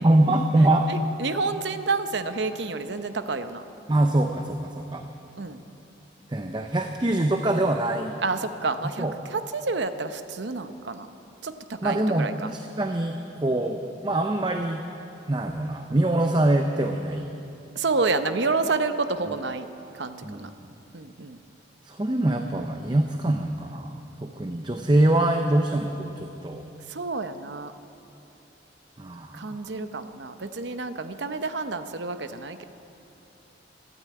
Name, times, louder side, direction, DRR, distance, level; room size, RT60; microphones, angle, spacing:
voice 1, 0.0-0.9 3.9-5.0 6.3-8.2 9.0-9.1 11.8-14.8 15.3-17.3 20.2-20.7 21.8-26.7 29.0-29.6, right 1 dB, 25° right, 4 dB, 0.6 m, -24 dB
voice 2, 0.9-3.6 5.4-5.6 8.2-9.0 9.3-11.1 11.4-12.5 17.7-19.7 19.9-20.5 20.9-21.4 26.9-27.7 29.3-32.6, right 3 dB, 70° right, 9 dB, 0.8 m, -29 dB
13.5 x 12.0 x 8.6 m, 2.9 s
head